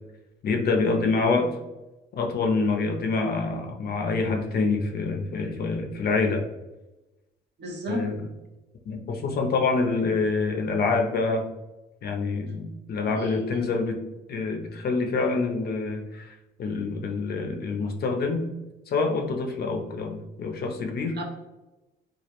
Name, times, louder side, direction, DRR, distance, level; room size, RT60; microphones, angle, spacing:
voice 1, 0.4-1.5 2.2-6.4 7.9-8.2 8.9-11.5 12.0-14.0 14.3-18.4 18.9-21.2, left 4 dB, 50° left, 3 dB, 0.5 m, -26 dB
voice 2, 7.6-8.1 13.0-13.7 21.2-21.3, right 1 dB, 60° right, 0 dB, 0.7 m, -34 dB
2.3 x 2.0 x 2.8 m, 1.0 s
cardioid pair, 90°, 20 cm